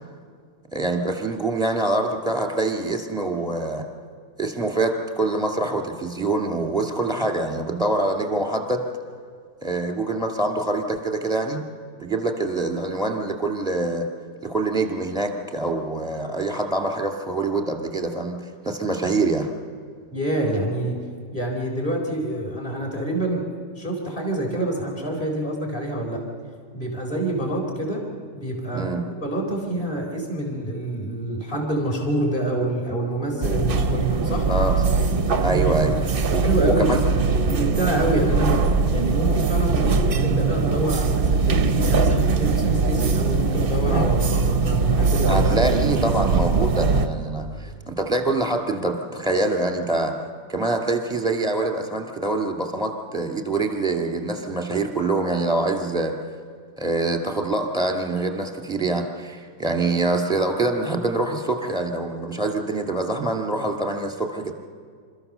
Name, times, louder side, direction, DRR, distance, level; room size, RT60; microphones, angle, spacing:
voice 1, 0.7-3.8 4.4-8.8 9.6-11.6 12.0-14.1 14.4-18.4 18.7-19.5 28.7-29.0 34.5-34.7 35.4-37.0 45.3-50.1 50.5-56.2 56.8-64.5, right 2 dB, ahead, 4 dB, 1.9 m, -25 dB
voice 2, 20.1-21.0 21.3-23.4 23.8-26.2 26.7-28.0 28.3-28.9 29.2-34.5 35.7-35.9 36.3-37.2 37.5-45.4, right 1 dB, 25° left, -1 dB, 4.5 m, -26 dB
sound 1, 33.4-47.1, right 4 dB, 40° right, 0.8 m, -21 dB
28.0 x 14.0 x 6.8 m, 2.1 s
omnidirectional pair, 2.0 m